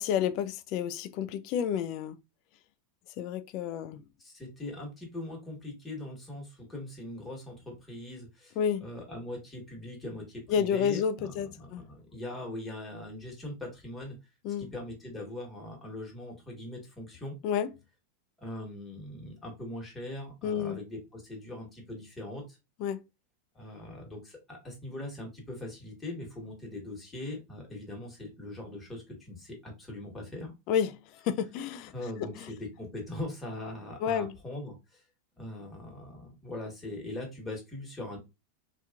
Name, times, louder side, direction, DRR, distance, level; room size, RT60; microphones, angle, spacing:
voice 1, 0.0-2.2 3.2-4.0 8.6-8.9 10.5-11.9 14.4-14.7 17.4-17.7 20.4-20.8 22.8-23.0 30.7-31.0 31.2-31.9 34.0-34.3, left 8 dB, 50° left, 0.3 m, -30 dB
voice 2, 4.2-14.2 14.6-17.3 18.4-22.6 23.5-30.5 31.9-35.0 35.4-38.2, left 1 dB, 15° left, 1.5 m, -41 dB
2.8 x 2.4 x 2.3 m
hypercardioid pair, 100°, 0 cm